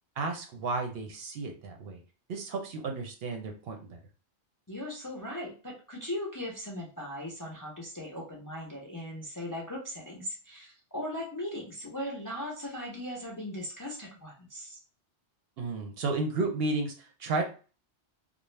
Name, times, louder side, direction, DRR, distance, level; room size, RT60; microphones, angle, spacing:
voice 1, 0.2-2.0 2.3-4.0 15.6-17.4, right 3 dB, 65° right, 2 dB, 0.8 m, -33 dB
voice 2, 4.7-14.8, left 1 dB, 30° left, -2 dB, 0.4 m, -38 dB
2.5 x 2.0 x 3.1 m, 0.36 s
omnidirectional pair, 1.2 m